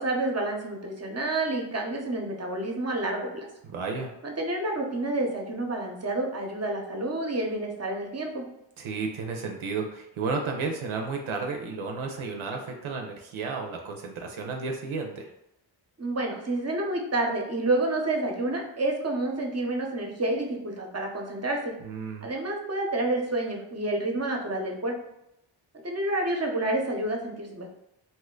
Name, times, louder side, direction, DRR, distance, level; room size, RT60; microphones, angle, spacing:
voice 1, 0.0-3.5 4.2-8.4 16.0-21.7 22.2-24.9 25.8-27.7, right 2 dB, 30° right, 1 dB, 0.8 m, -29 dB
voice 2, 3.7-4.1 8.8-15.3 21.8-22.3, right 4 dB, 80° right, 2 dB, 0.6 m, -32 dB
2.8 x 2.2 x 3.7 m, 0.85 s
cardioid pair, 45°, 48 cm